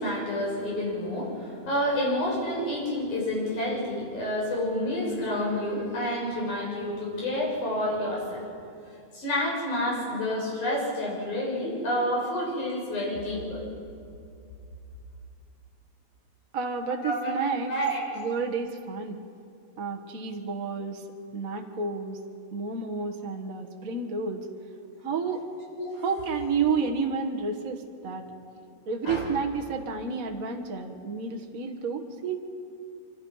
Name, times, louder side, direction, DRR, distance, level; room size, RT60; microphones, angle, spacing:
voice 1, 0.0-8.4 9.1-13.6 17.0-17.3 17.7-18.0 25.8-26.0 29.0-29.2, left 1 dB, 85° left, -3 dB, 8.1 m, -29 dB
voice 2, 16.5-17.7 18.1-19.2 19.8-21.0 21.3-22.2 22.5-24.5 25.0-25.4 26.0-28.3 28.8-32.4, right 5 dB, 40° right, 3 dB, 1.2 m, -30 dB
26.5 x 25.5 x 5.6 m, 2.5 s
omnidirectional pair, 3.4 m